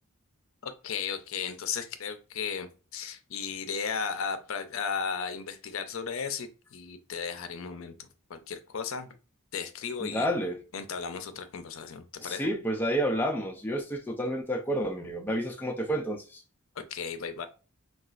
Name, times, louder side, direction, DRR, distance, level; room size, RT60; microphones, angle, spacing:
voice 1, 0.6-9.1 9.5-10.3 10.7-12.5 16.8-17.5, left 6 dB, 70° left, 0.5 m, -35 dB
voice 2, 10.0-10.6 12.2-16.4, equal, 10° left, 0.3 m, -30 dB
4.0 x 2.3 x 2.3 m
head